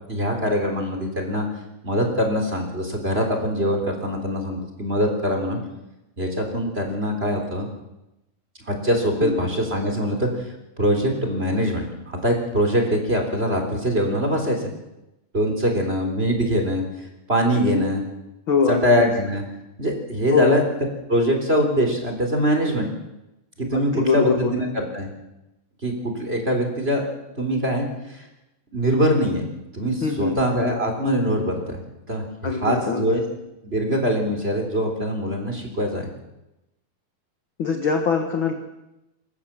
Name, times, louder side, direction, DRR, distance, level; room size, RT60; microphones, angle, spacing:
voice 1, 0.1-1.5 1.8-5.6 6.2-7.7 8.7-10.3 10.8-14.7 15.3-18.0 18.7-19.4 19.8-20.6 21.1-22.9 23.6-25.1 25.8-27.1 27.4-28.3 28.7-29.5 29.7-31.8 32.1-33.2 33.6-36.1, equal, 15° right, 3 dB, 3.5 m, -23 dB
voice 2, 17.5-17.8 18.5-18.8 20.3-20.5 23.7-24.5 30.0-30.4 32.4-33.1 37.6-38.5, left 5 dB, 50° left, 5 dB, 1.6 m, -22 dB
27.5 x 14.0 x 7.5 m, 0.94 s
omnidirectional pair, 4.4 m